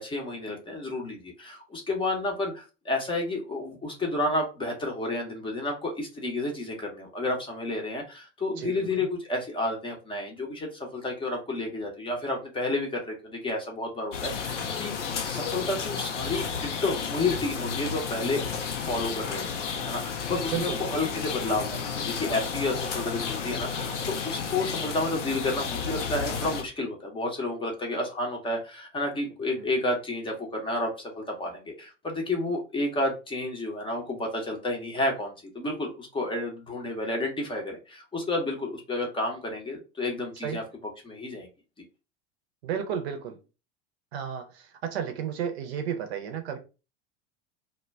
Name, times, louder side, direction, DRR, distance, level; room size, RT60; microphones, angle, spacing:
voice 1, 0.0-14.9 15.3-18.5 18.8-40.6 41.0-41.5, left 2 dB, 15° left, 0.6 m, -31 dB
voice 2, 8.6-9.1 20.5-21.0 29.5-29.7 40.4-40.6 42.6-43.4 44.1-46.6, right 8 dB, 60° right, 0.6 m, -33 dB
sound 1, 14.1-26.6, left 6 dB, 85° left, 0.5 m, -32 dB
2.2 x 2.1 x 3.2 m
figure-of-eight pair, 85°, 35 cm